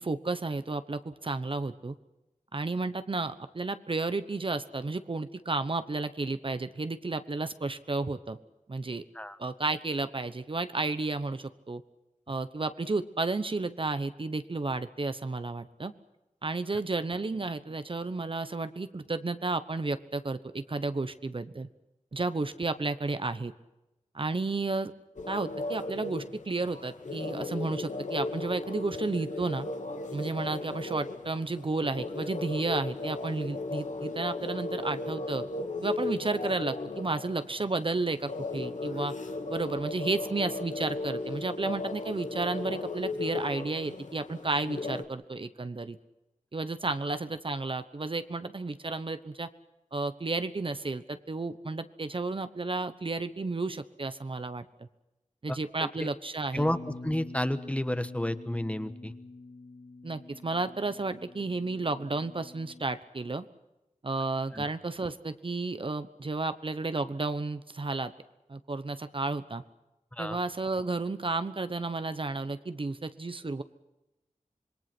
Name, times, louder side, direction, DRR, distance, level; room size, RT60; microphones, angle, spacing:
voice 1, 0.0-1.9 2.5-8.4 8.7-9.0 9.4-11.8 12.3-15.9 16.4-21.7 22.1-23.5 24.1-24.9 25.3-29.7 30.1-35.4 35.8-39.1 39.5-46.0 46.5-49.5 49.9-54.9 55.4-56.7 60.0-63.5 64.0-68.1 68.5-69.6 70.2-73.6, right 3 dB, 45° right, 11 dB, 1.0 m, -32 dB
sound 1, 25.2-45.0, left 3 dB, 75° left, 2.1 m, -36 dB
voice 2, 55.5-55.9 56.5-56.8 57.0-59.1 64.5-64.7 70.1-70.4, left 1 dB, 10° left, 11 dB, 1.3 m, -31 dB
Bass guitar, 56.6-62.8, left 3 dB, 60° left, 5.1 m, -46 dB
26.5 x 21.5 x 6.1 m, 0.97 s
wide cardioid pair, 75°, 13 cm